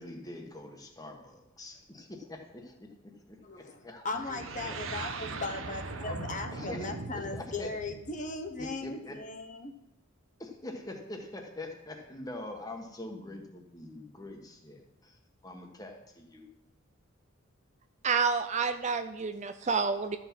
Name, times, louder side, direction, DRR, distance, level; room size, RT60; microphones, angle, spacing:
voice 1, 0.0-4.7 6.0-7.7 8.6-9.2 10.4-16.5, left 2 dB, 15° left, 2 dB, 1.3 m, -44 dB
voice 2, 3.4-9.7, left 3 dB, 35° left, 5 dB, 1.0 m, -38 dB
sound 1, 4.1-9.0, right 3 dB, 70° right, 0.9 m, -40 dB
voice 3, 18.0-20.2, right 5 dB, 35° right, 9 dB, 0.4 m, -29 dB
13.0 x 5.9 x 6.0 m, 0.88 s
head